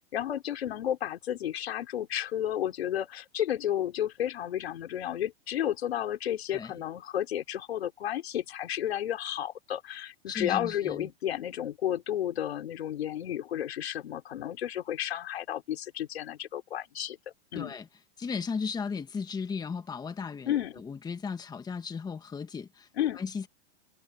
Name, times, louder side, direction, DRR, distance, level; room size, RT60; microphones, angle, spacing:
voice 1, 0.1-17.2 17.5-17.7 20.5-20.8 22.9-23.2, left 11 dB, 85° left, 4.1 m, -32 dB
voice 2, 10.3-11.1 17.6-17.9 18.2-22.9 23.2-23.5, left 5 dB, 15° left, 1.7 m, -36 dB
hypercardioid pair, 135°, 31 cm